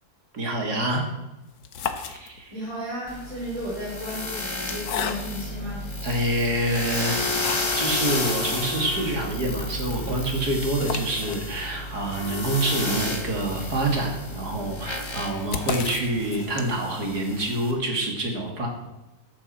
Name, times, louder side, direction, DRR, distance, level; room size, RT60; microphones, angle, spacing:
voice 1, 0.3-1.0 2.0-2.5 6.0-7.3 7.7-18.7, right 1 dB, 80° right, 1 dB, 3.1 m, -27 dB
sound 1, 1.5-2.7 3.5-5.6 6.2-6.3 6.8-7.9 8.3-8.4 8.6-8.7 9.1-17.0, left 7 dB, 75° left, 1.5 m, -36 dB
voice 2, 2.5-5.9, equal, 20° right, -9 dB, 4.3 m, -34 dB
sound 2, 3.1-17.7, left 2 dB, 20° left, 1.4 m, -32 dB
sound 3, 5.3-16.5, equal, 40° right, 6.2 m, -46 dB
14.0 x 11.0 x 4.4 m, 1.0 s
omnidirectional pair, 1.7 m